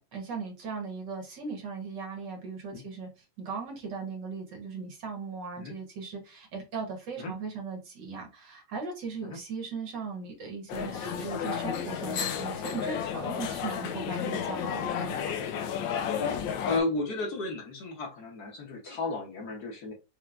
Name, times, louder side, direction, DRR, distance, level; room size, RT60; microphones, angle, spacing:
voice 1, 0.0-3.1 3.4-15.4, right 5 dB, 65° right, 1.8 m, -38 dB
sound 1, 10.7-16.8, left 8 dB, 75° left, 1.4 m, -32 dB
voice 2, 16.5-19.9, left 3 dB, 55° left, 1.5 m, -33 dB
4.5 x 3.1 x 2.4 m
omnidirectional pair, 2.1 m